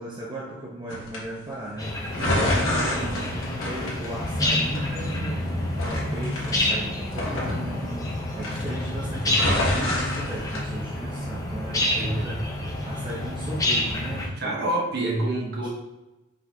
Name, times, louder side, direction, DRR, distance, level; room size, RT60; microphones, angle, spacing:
voice 1, 0.0-12.4 12.8-14.6 15.6-15.7, right 1 dB, 20° right, -5 dB, 0.6 m, -37 dB
sound 1, 0.9-1.2 2.1-4.5 4.7-5.4 5.8-8.1 8.4-8.8 9.2-10.6, left 1 dB, 70° left, 1.3 m, -28 dB
sound 2, 1.8-14.3, left 1 dB, 15° left, 0.6 m, -28 dB
voice 2, 2.2-3.1 11.9-12.3 14.4-15.7, right 1 dB, 50° right, -2 dB, 0.9 m, -28 dB
4.8 x 3.9 x 2.7 m, 1.0 s
head